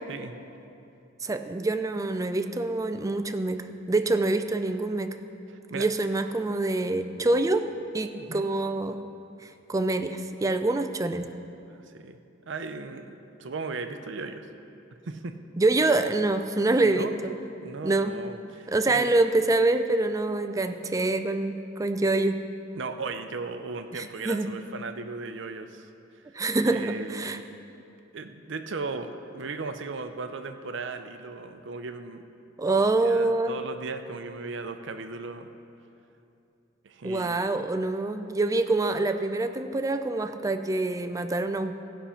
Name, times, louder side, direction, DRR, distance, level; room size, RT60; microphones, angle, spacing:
voice 1, 1.2-3.6 3.9-5.1 5.7-7.6 7.9-9.0 9.4-11.3 15.6-17.1 17.8-18.2 18.7-22.4 23.9-24.5 26.3-27.4 32.6-33.5 37.0-41.8, right 2 dB, 15° right, 8 dB, 0.4 m, -25 dB
voice 2, 5.5-5.9 8.2-8.5 11.7-12.2 12.5-14.5 15.0-15.3 16.8-17.2 17.6-19.1 22.8-25.9 26.6-27.4 28.1-32.2 32.8-35.5 36.8-37.4, right 4 dB, 65° right, 8 dB, 0.6 m, -37 dB
15.0 x 5.7 x 5.7 m, 2.7 s
head